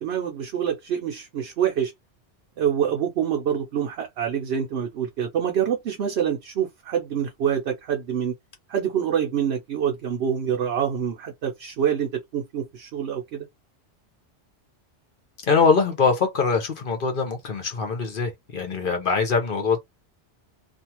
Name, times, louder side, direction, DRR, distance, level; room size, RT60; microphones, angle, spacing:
voice 1, 0.0-1.9 2.6-8.3 8.7-13.5, right 8 dB, 70° right, 0.9 m, -26 dB
voice 2, 15.5-19.8, left 5 dB, 50° left, 0.9 m, -23 dB
2.5 x 2.3 x 2.9 m
omnidirectional pair, 1.2 m